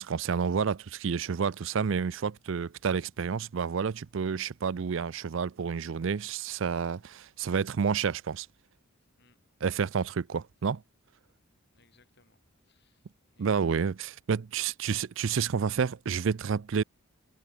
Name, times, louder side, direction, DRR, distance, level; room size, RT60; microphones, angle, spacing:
voice 1, 0.0-8.5 9.6-10.8 13.4-16.8, right 6 dB, 60° right, 0.4 m, -30 dB
voice 2, 11.7-13.7, left 3 dB, 50° left, 2.9 m, -67 dB
head